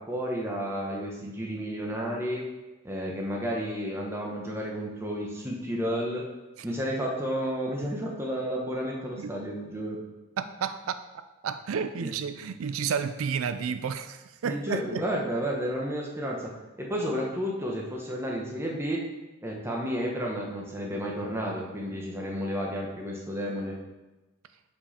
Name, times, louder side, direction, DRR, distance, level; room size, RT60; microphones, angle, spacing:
voice 1, 0.0-2.4 2.8-6.2 6.6-10.0 12.0-12.1 14.4-16.5 16.8-19.0 19.4-23.7, equal, 10° right, -2 dB, 1.2 m, -31 dB
voice 2, 10.4-11.0 11.4-15.0, right 6 dB, 90° right, 11 dB, 0.4 m, -31 dB
7.1 x 5.6 x 4.3 m, 1.1 s
head